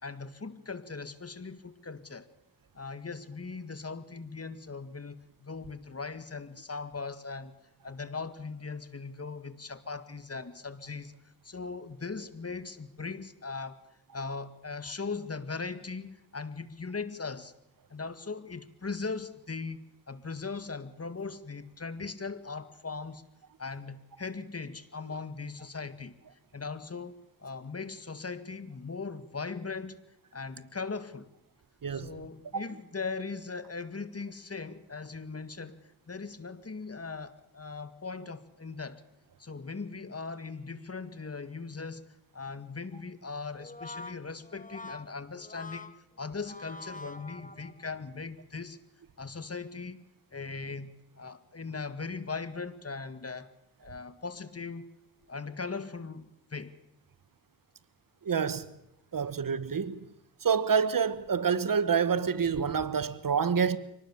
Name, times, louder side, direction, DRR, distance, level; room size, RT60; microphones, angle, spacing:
voice 1, 0.0-2.3 2.8-7.5 7.8-11.1 11.4-13.8 14.1-17.5 17.9-23.3 23.6-26.2 26.5-30.0 30.3-31.3 31.9-39.0 39.4-42.1 42.3-48.8 49.2-50.0 50.3-53.5 53.8-54.9 55.3-56.8, left 4 dB, 40° left, 1.9 m, -39 dB
voice 2, 31.8-32.1 32.5-32.6 58.2-58.7 59.1-60.0 60.4-63.8, right 6 dB, 65° right, 1.3 m, -27 dB
Brass instrument, 43.5-48.0, left 2 dB, 20° left, 1.3 m, -46 dB
24.5 x 19.0 x 7.2 m
cardioid pair, 40°, 36 cm